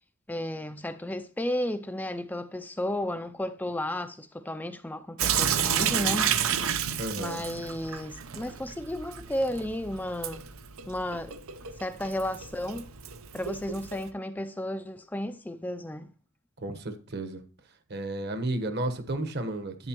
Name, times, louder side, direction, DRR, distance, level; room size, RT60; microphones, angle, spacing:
voice 1, 0.3-6.4 7.2-10.4 10.9-11.3 11.8-12.9 13.3-16.1, left 1 dB, 10° left, 0.4 m, -33 dB
Sink (filling or washing) / Drip, 5.2-14.1, right 8 dB, 85° right, 0.7 m, -31 dB
voice 2, 7.0-7.4 16.6-17.5 17.9-19.9, right 1 dB, 50° right, 1.2 m, -32 dB
11.0 x 8.8 x 3.0 m
head